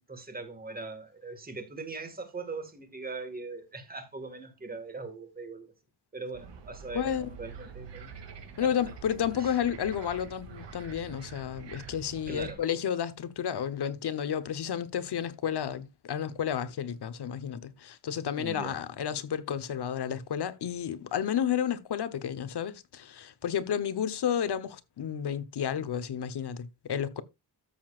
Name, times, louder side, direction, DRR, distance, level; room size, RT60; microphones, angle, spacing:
voice 1, 0.1-5.7 6.1-8.1 8.6-8.7 9.3-9.6 12.3-12.6 18.4-18.8, right 3 dB, 20° right, 1.9 m, -40 dB
sound 1, 6.3-12.5, right 5 dB, 80° right, 2.5 m, -46 dB
voice 2, 6.9-7.3 8.6-27.2, left 9 dB, 70° left, 1.1 m, -31 dB
13.5 x 7.0 x 2.5 m
wide cardioid pair, 170°, 42 cm